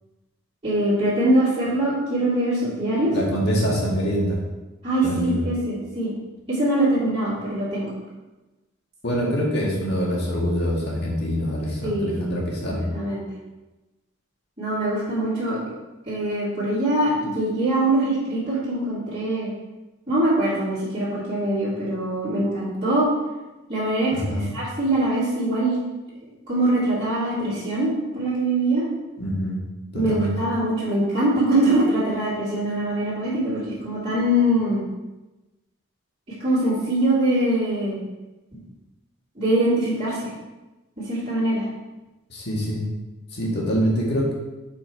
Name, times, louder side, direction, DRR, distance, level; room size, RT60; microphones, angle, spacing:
voice 1, 0.6-3.1 4.8-6.1 6.5-7.9 11.8-12.3 12.7-13.2 14.6-15.6 16.1-19.5 20.1-23.1 23.7-24.1 24.5-25.8 26.5-28.8 29.9-34.8 36.4-38.0 39.4-40.3 41.1-41.6, right 1 dB, 25° right, -11 dB, 2.7 m, -23 dB
voice 2, 3.1-4.4 5.0-5.4 9.0-12.9 24.1-24.5 29.2-29.6 29.9-30.3 42.3-42.9 43.3-44.3, equal, 55° left, -3 dB, 1.9 m, -25 dB
7.8 x 4.6 x 4.5 m, 1.1 s
head